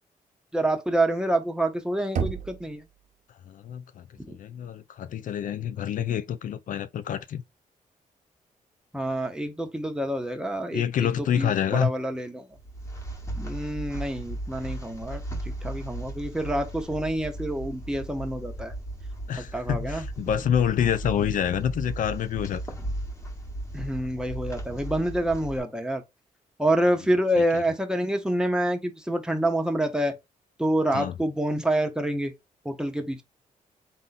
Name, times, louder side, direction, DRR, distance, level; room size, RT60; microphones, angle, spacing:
voice 1, 0.5-2.8 4.3-4.4 8.9-11.1 11.3-12.5 13.4-15.2 15.6-18.7 19.4-20.1 23.7-26.0 26.6-30.1 30.6-32.3 32.6-33.2, right 1 dB, 5° right, 1.0 m, -27 dB
Knock, 2.1-3.1, right 6 dB, 65° right, 0.8 m, -31 dB
voice 2, 3.5-7.4 10.7-11.9 19.3-22.6 27.5-27.6 30.9-31.1, left 9 dB, 65° left, 0.4 m, -27 dB
sound 1, 12.5-25.6, right 1 dB, 20° left, 1.4 m, -36 dB
3.7 x 2.7 x 4.1 m
cardioid pair, 95°, 15 cm